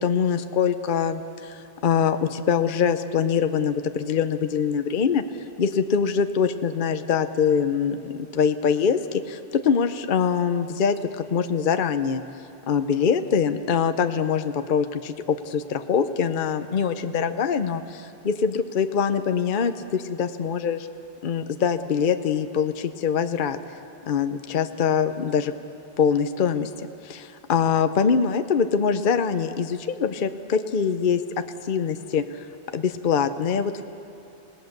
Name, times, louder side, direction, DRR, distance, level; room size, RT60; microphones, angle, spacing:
voice 1, 0.0-5.2 5.6-12.2 12.7-20.9 21.2-23.6 24.1-25.5 26.0-31.2 31.6-32.4 32.7-33.8, left 6 dB, 50° left, 9 dB, 0.8 m, -24 dB
27.5 x 18.0 x 6.6 m, 2.7 s
omnidirectional pair, 1.2 m